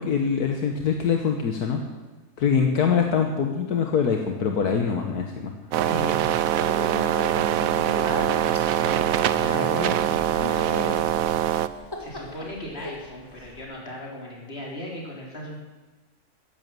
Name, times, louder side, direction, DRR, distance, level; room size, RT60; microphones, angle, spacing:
voice 1, 0.0-1.8 2.4-5.5, left 6 dB, 70° left, 3 dB, 1.7 m, -24 dB
sound 1, 5.7-11.7, right 12 dB, 65° right, 1.0 m, -23 dB
voice 2, 5.8-11.4 12.0-15.6, left 1 dB, 35° left, -2 dB, 3.8 m, -37 dB
Speech, 7.6-13.6, left 1 dB, 15° left, 2.0 m, -37 dB
15.0 x 10.5 x 7.6 m, 1.2 s
omnidirectional pair, 1.7 m